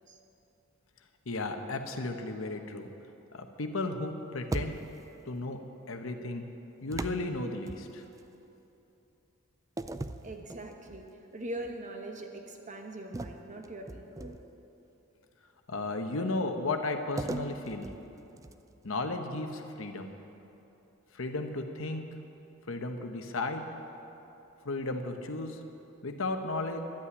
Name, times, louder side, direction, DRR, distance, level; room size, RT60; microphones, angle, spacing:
voice 1, 1.3-2.9 3.3-4.8 5.2-5.6 5.9-6.4 6.8-8.0 15.7-17.9 18.8-20.1 21.1-22.0 22.7-23.6 24.6-25.6 26.0-26.9, left 2 dB, 65° left, 5 dB, 1.0 m, -34 dB
sound 1, 4.5-5.2 6.9-8.3 9.8-11.1 11.6-11.8 13.1-14.6 17.2-18.8, right 2 dB, 15° right, 0.4 m, -39 dB
voice 2, 10.2-11.1 11.3-14.4, right 1 dB, 35° right, 3 dB, 1.2 m, -42 dB
12.0 x 8.6 x 9.6 m, 3.0 s
head